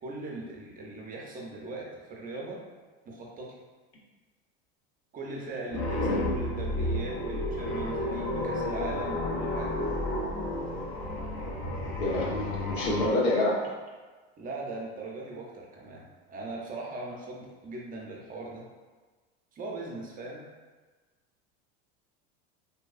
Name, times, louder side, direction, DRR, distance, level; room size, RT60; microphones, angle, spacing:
voice 1, 0.0-2.6 3.1-3.6 5.1-9.8 14.4-18.6 19.5-20.5, right 2 dB, 25° right, -2 dB, 0.5 m, -39 dB
sound 1, 5.7-13.1, left 1 dB, 40° left, 0.5 m, -31 dB
voice 2, 6.0-6.4 12.0-13.6, left 1 dB, 85° left, -4 dB, 0.8 m, -28 dB
2.7 x 2.2 x 2.4 m, 1.3 s
supercardioid pair, 105°, 31 cm